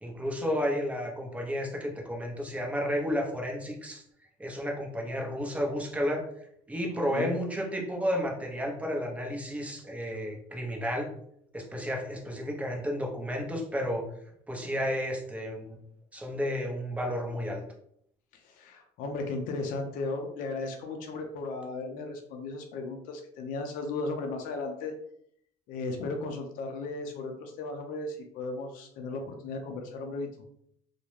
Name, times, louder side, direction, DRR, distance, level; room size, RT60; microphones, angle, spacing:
voice 1, 0.0-4.0 4.4-6.3 6.7-11.1 11.5-14.1 14.5-15.8 16.1-17.6, equal, 10° right, 0 dB, 0.7 m, -32 dB
voice 2, 18.3-24.9 25.7-30.3, left 3 dB, 70° left, 3 dB, 0.5 m, -35 dB
2.3 x 2.1 x 3.1 m, 0.69 s
supercardioid pair, 95°, 15 cm